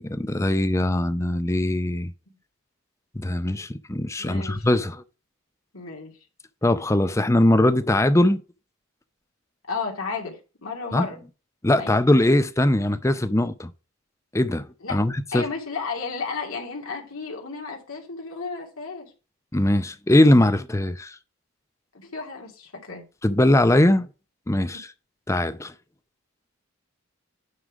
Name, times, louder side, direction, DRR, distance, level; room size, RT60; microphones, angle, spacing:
voice 1, 0.0-2.1 3.1-5.0 6.6-8.4 10.9-11.1 11.6-13.7 14.3-15.5 19.5-21.2 23.2-24.1 24.5-24.9 25.3-25.7, left 1 dB, 15° left, 0.5 m, -21 dB
voice 2, 4.2-4.7 5.7-6.1 9.7-11.2 11.8-12.0 14.8-15.0 15.3-19.1 21.9-23.0 24.6-24.7, left 4 dB, 80° left, 2.6 m, -33 dB
9.6 x 3.8 x 4.8 m
head